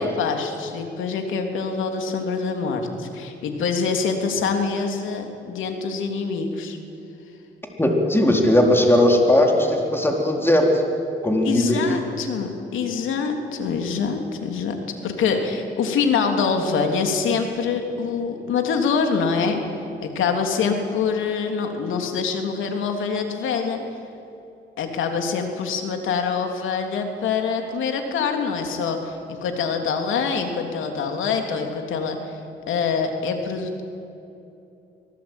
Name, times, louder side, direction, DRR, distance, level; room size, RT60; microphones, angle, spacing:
voice 1, 0.2-6.8 11.4-14.8 15.0-19.6 20.0-23.8 24.8-32.4 32.7-33.8, left 5 dB, 80° left, 4 dB, 3.4 m, -25 dB
voice 2, 7.8-10.7 11.2-12.0, left 1 dB, 10° left, 1 dB, 4.1 m, -18 dB
25.5 x 18.5 x 9.1 m, 2.8 s
cardioid pair, 90°, 20 cm